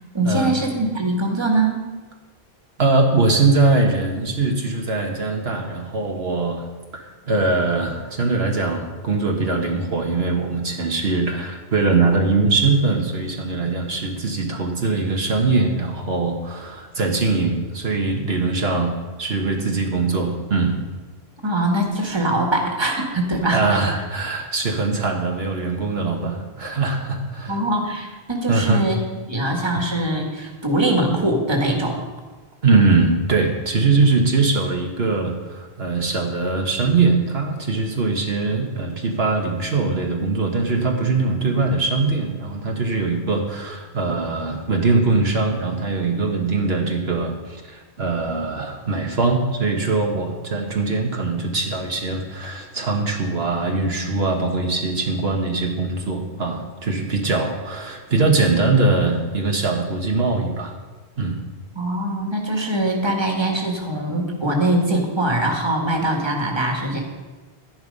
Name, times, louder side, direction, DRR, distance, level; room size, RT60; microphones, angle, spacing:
voice 1, 0.1-1.8 21.4-23.8 27.5-29.0 29.3-32.0 61.7-67.0, right 1 dB, 25° right, 1 dB, 1.9 m, -22 dB
voice 2, 2.8-6.6 6.9-18.9 19.2-20.8 23.5-27.6 28.5-28.9 32.6-60.7 61.2-61.4, right 3 dB, 70° right, 1 dB, 1.7 m, -21 dB
12.5 x 10.5 x 5.4 m, 1.3 s
omnidirectional pair, 1.1 m